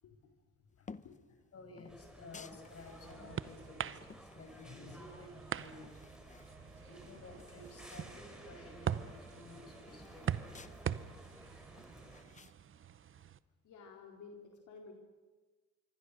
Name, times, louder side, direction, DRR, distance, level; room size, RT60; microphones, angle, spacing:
voice 1, 0.0-1.5 13.6-14.9, left 4 dB, 75° left, 1 dB, 3.8 m, -55 dB
sound 1, 0.8-1.3 1.8-3.2 3.6-5.2 5.5-6.6 6.9-7.0 7.2-8.1 8.4-8.5 8.8-10.8 11.2-12.6, left 4 dB, 25° left, 0.8 m, -56 dB
voice 2, 1.5-6.4 6.9-10.5, left 3 dB, 50° left, 5 dB, 6.0 m, -53 dB
sound 2, 1.9-12.2, equal, ahead, 5.1 m, -55 dB
sound 3, 2.3-13.4, right 8 dB, 45° right, 0.8 m, -43 dB
26.5 x 23.5 x 6.5 m, 1.3 s
cardioid pair, 90°, 30 cm